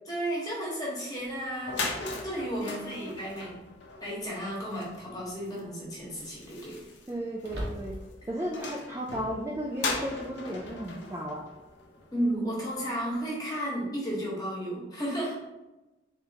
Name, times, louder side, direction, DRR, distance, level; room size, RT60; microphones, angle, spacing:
voice 1, 0.1-1.8 2.2-3.6 4.0-6.8 12.1-15.4, right 1 dB, 20° left, -5 dB, 1.1 m, -33 dB
sound 1, 1.3-1.4 1.6-12.4, left 3 dB, 75° left, 0.7 m, -39 dB
voice 2, 2.6-3.1 7.1-8.0 8.3-11.4, equal, 15° right, -3 dB, 0.3 m, -35 dB
sound 2, 7.4-8.3, equal, 65° right, 0.9 m, -38 dB
3.9 x 3.5 x 2.7 m, 1.0 s
head